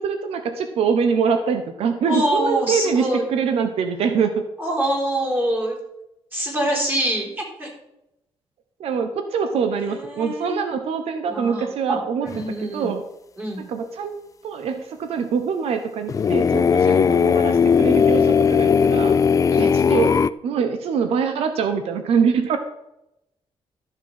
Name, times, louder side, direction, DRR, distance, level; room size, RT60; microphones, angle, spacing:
voice 1, 0.0-4.4 8.8-12.4 12.7-13.0 13.6-14.1 14.4-19.2 19.6-20.2 20.4-22.6, right 6 dB, 85° right, 8 dB, 1.1 m, -24 dB
voice 2, 2.1-3.2 4.6-5.8 6.3-7.7 9.9-10.6 11.3-12.0 12.2-12.9 13.4-13.6 16.8-17.0 19.5-19.7, right 1 dB, 20° right, -2 dB, 4.8 m, -25 dB
Throat Chakrah Meditation Recording, 12.3-12.4 16.1-20.3, left 6 dB, 35° left, 0.4 m, -17 dB
13.5 x 7.0 x 5.8 m, 0.87 s
cardioid pair, 125°, 10 cm